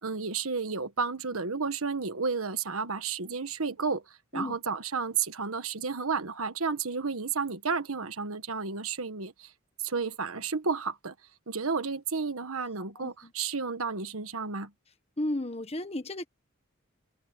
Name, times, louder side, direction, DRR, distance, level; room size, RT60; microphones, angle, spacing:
voice 1, 0.0-4.0 4.3-9.5 9.8-11.1 11.5-14.7, right 5 dB, 90° right, 1.5 m, -32 dB
voice 2, 13.0-13.3 15.2-16.3, left 1 dB, 30° left, 1.5 m, -33 dB
head